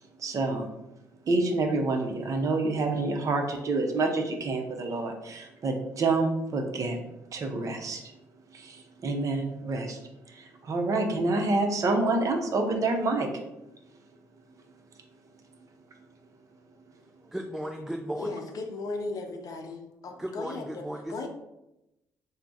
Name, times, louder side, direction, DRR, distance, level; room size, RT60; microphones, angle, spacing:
voice 1, 0.2-0.7 1.3-7.0 7.3-8.0 8.5-10.0 10.3-13.3, right 3 dB, 40° right, 4 dB, 0.6 m, -27 dB
voice 2, 17.2-18.4 20.2-21.3, equal, 5° right, 2 dB, 0.4 m, -36 dB
voice 3, 18.2-21.3, left 3 dB, 45° left, 4 dB, 0.6 m, -36 dB
3.3 x 2.0 x 3.9 m, 0.92 s
figure-of-eight pair, 45°, 8 cm